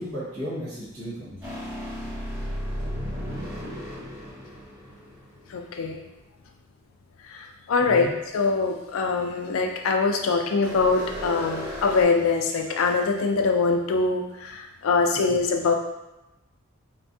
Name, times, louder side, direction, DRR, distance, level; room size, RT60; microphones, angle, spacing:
voice 1, 0.0-1.5 7.8-8.1 15.1-15.3, equal, 75° right, -8 dB, 1.3 m, -35 dB
sound 1, 1.4-5.7 10.6-12.0, equal, 15° right, 1.5 m, -34 dB
voice 2, 5.5-6.0 7.3-15.7, left 4 dB, 85° left, 4 dB, 0.4 m, -23 dB
3.2 x 2.2 x 2.6 m, 0.99 s
head